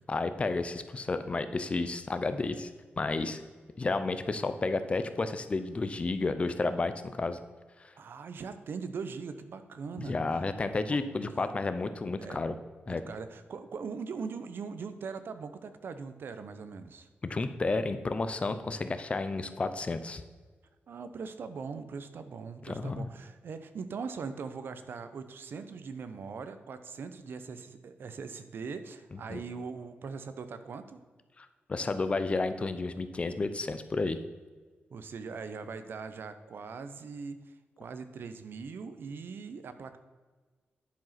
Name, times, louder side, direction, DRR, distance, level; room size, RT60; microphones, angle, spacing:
voice 1, 0.1-2.7 3.0-3.4 3.8-6.9 7.2-7.4 10.0-12.6 12.9-13.0 17.3-20.2 22.6-23.1 29.3-29.4 31.4-34.2, left 3 dB, 30° left, 10 dB, 0.6 m, -31 dB
voice 2, 8.0-10.2 10.9-11.4 12.2-12.4 12.9-17.1 20.9-31.0 34.9-37.4 37.8-40.0, right 5 dB, 65° right, 10 dB, 0.7 m, -41 dB
10.5 x 4.9 x 5.8 m, 1.4 s
wide cardioid pair, 145°, 4 cm